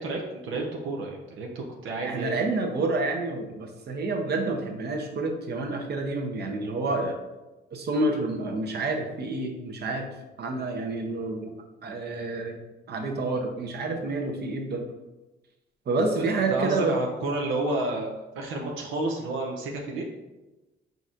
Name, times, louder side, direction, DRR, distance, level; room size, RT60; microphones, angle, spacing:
voice 1, 0.0-2.4 16.2-20.1, right 2 dB, 85° right, 0 dB, 0.7 m, -31 dB
voice 2, 2.0-7.2 7.7-10.1 10.4-11.5 11.8-12.6 12.9-14.8 15.9-17.0, right 2 dB, 55° right, 2 dB, 0.8 m, -28 dB
4.4 x 3.9 x 2.5 m, 1.1 s
cardioid pair, 90°, 20 cm